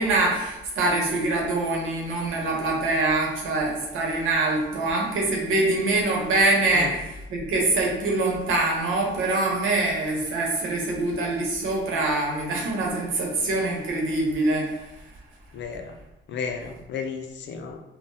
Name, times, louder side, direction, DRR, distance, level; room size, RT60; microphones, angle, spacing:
voice 1, 0.0-15.1, right 2 dB, 85° right, -1 dB, 0.9 m, -24 dB
voice 2, 15.5-15.9 16.3-17.8, left 5 dB, 65° left, 4 dB, 0.5 m, -33 dB
3.8 x 2.2 x 2.6 m, 0.94 s
cardioid pair, 90°, 20 cm